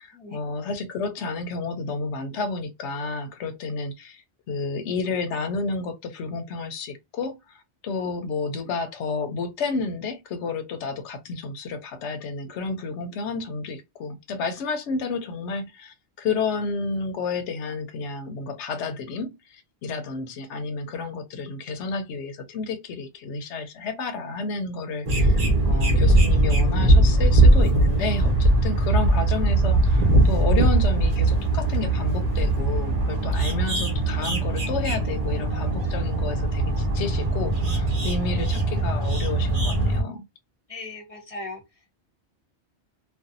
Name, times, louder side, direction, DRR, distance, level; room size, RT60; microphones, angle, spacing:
voice 1, 0.0-40.2, left 4 dB, 80° left, 0.9 m, -31 dB
sound 1, 25.0-40.0, right 2 dB, 40° right, 0.7 m, -20 dB
voice 2, 40.7-41.6, left 2 dB, 35° left, 0.7 m, -37 dB
2.5 x 2.2 x 2.5 m
omnidirectional pair, 1.2 m